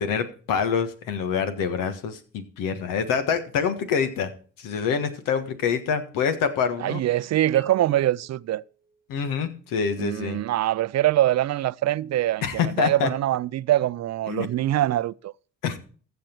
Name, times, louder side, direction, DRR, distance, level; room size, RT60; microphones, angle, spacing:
voice 1, 0.0-4.3 4.6-7.0 9.1-10.4 12.4-13.1 14.3-14.5 15.6-15.8, left 6 dB, 85° left, 1.5 m, -26 dB
voice 2, 6.8-8.6 10.0-15.3, right 13 dB, 55° right, 0.5 m, -24 dB
sound 1, 7.5-9.5, right 1 dB, 25° left, 3.7 m, -51 dB
15.0 x 6.0 x 4.5 m
supercardioid pair, 65°, 32 cm